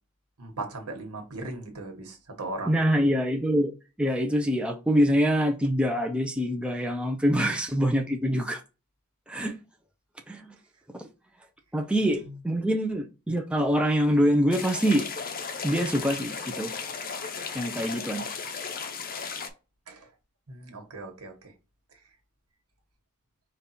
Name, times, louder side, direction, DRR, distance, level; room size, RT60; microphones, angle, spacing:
voice 1, 0.4-2.9 12.0-12.4 19.9-20.1 20.5-21.5, right 2 dB, 85° right, 1.4 m, -38 dB
voice 2, 2.7-3.7 4.0-8.6 9.3-9.6 10.3-10.5 10.9-11.1 11.7-15.1 15.6-16.7 17.5-18.3, equal, 5° right, 0.5 m, -25 dB
sound 1, 14.5-19.5, left 5 dB, 40° left, 0.6 m, -35 dB
5.2 x 2.4 x 4.2 m
head